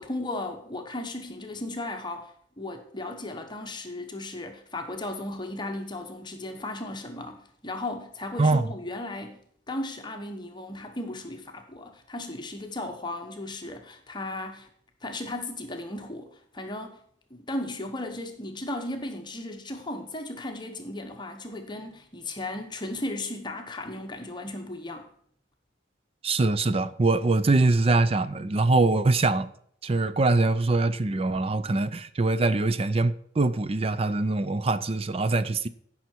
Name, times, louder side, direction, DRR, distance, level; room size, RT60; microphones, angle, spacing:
voice 1, 0.0-9.4 9.7-14.7 15.0-17.0 17.3-25.1, left 2 dB, 25° left, 1.0 m, -36 dB
voice 2, 8.4-8.7 26.2-29.5 29.8-35.7, right 3 dB, 30° right, 0.5 m, -23 dB
15.5 x 5.8 x 4.5 m
head